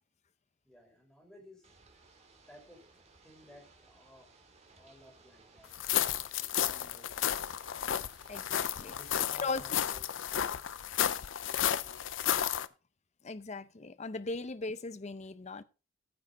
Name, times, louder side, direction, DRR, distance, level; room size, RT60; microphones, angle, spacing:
voice 1, 0.6-4.3 4.8-6.2 6.4-7.3 8.8-10.4 11.4-12.3, left 1 dB, 5° left, 4.1 m, -57 dB
Ocean / Boat Water vehicle, 1.6-9.5, right 3 dB, 35° right, 2.0 m, -61 dB
sound 1, 5.7-12.7, left 10 dB, 85° left, 0.5 m, -32 dB
voice 2, 8.3-8.9 9.4-9.6 13.2-15.6, left 3 dB, 35° left, 0.6 m, -38 dB
15.0 x 6.6 x 3.9 m
head